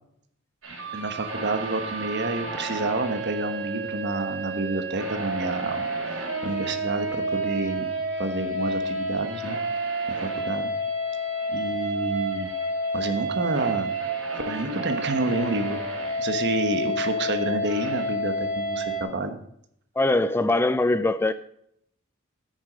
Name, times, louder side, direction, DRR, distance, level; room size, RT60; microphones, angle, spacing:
sound 1, 0.6-19.0, right 1 dB, 80° right, 3.8 m, -30 dB
voice 1, 0.9-9.6 10.2-10.7 11.5-12.5 12.9-13.9 14.5-15.8 16.2-19.4, right 2 dB, 55° right, 1.2 m, -29 dB
voice 2, 20.0-21.3, left 2 dB, 10° left, 0.3 m, -22 dB
10.0 x 9.3 x 5.1 m
head